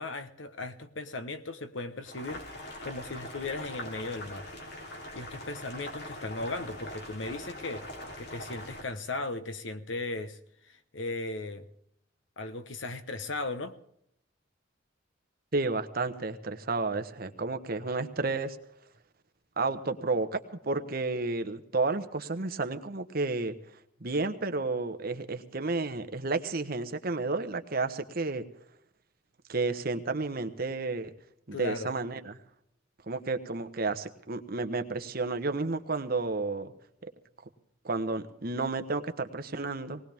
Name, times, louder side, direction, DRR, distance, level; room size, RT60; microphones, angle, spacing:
voice 1, 0.0-4.5 5.1-7.8 8.2-10.4 10.6-11.7 12.4-13.7 31.5-31.9, left 2 dB, 80° left, 11 dB, 1.2 m, -37 dB
Boiling, 2.0-8.8, left 1 dB, 60° left, 3.4 m, -42 dB
voice 2, 15.5-18.6 19.6-23.5 24.0-28.4 29.5-31.1 31.5-32.4 33.1-36.7 37.8-40.0, right 3 dB, 50° right, 8 dB, 1.2 m, -31 dB
19.5 x 19.0 x 3.6 m, 0.74 s
head